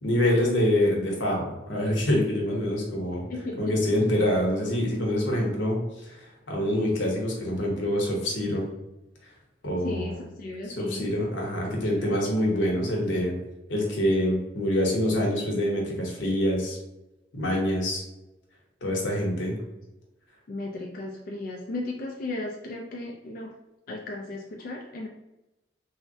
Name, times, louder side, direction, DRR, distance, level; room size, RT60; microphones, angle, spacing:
voice 1, 0.0-3.3 3.6-8.7 9.6-10.1 10.8-13.4 13.7-16.8 17.3-18.0 18.8-19.6, left 1 dB, 80° left, -1 dB, 0.8 m, -26 dB
voice 2, 3.3-4.0 9.8-11.5 11.9-12.2 20.5-23.5 23.9-25.1, left 2 dB, 45° left, -1 dB, 0.3 m, -36 dB
3.2 x 2.1 x 2.6 m, 0.96 s
head